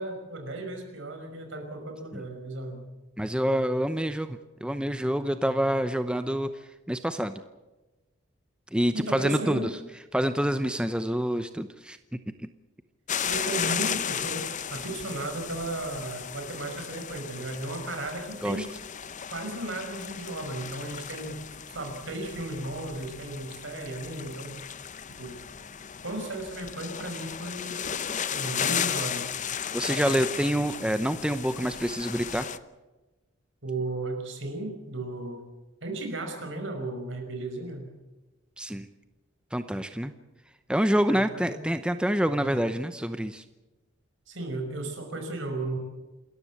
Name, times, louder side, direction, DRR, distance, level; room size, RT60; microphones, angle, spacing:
voice 1, 0.0-2.8 8.9-9.7 13.2-14.4 14.7-18.7 19.3-21.4 21.7-24.5 25.2-25.3 26.0-27.8 28.3-29.3 33.6-35.4 35.8-37.9 41.1-41.6 44.3-45.8, right 2 dB, 65° right, 4 dB, 5.6 m, -35 dB
voice 2, 3.2-6.5 6.9-7.3 8.7-9.7 10.1-12.0 12.4-12.5 18.4-18.6 29.7-32.5 38.6-38.9 39.5-40.1 40.7-43.4, equal, 5° right, 10 dB, 0.8 m, -27 dB
sound 1, 13.1-32.6, left 8 dB, 40° left, 0.8 m, -35 dB
28.0 x 14.0 x 8.4 m, 1.1 s
head